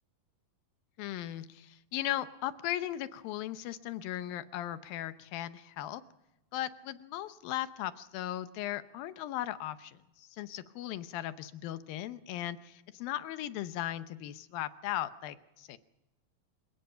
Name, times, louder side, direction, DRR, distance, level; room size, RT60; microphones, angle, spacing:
voice 1, 1.0-6.0 6.5-15.8, left 13 dB, 90° left, 12 dB, 2.7 m, -37 dB
27.5 x 17.0 x 5.7 m, 0.96 s
omnidirectional pair, 4.0 m